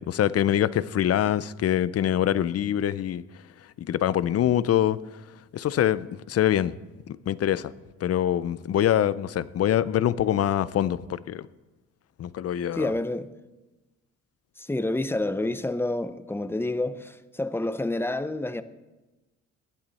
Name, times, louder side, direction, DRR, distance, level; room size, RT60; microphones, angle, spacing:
voice 1, 0.1-3.2 3.8-5.0 5.5-6.7 7.1-7.7 8.0-11.5 12.2-12.9, left 11 dB, 55° left, 0.6 m, -24 dB
voice 2, 12.7-13.3 14.6-18.6, left 2 dB, 10° left, 0.7 m, -28 dB
19.0 x 10.5 x 4.2 m
cardioid pair, 90°, 30 cm